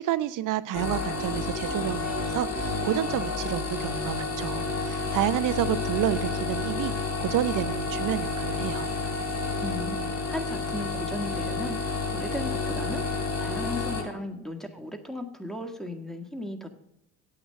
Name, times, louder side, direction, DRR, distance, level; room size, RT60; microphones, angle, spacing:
voice 1, 0.0-8.9, right 13 dB, 50° right, 14 dB, 0.8 m, -29 dB
sound 1, 0.7-14.0, left 3 dB, 40° left, 3.3 m, -30 dB
voice 2, 9.4-16.7, left 1 dB, ahead, 5 dB, 1.7 m, -36 dB
8.8 x 8.7 x 6.5 m, 0.79 s
hypercardioid pair, 65°, 40 cm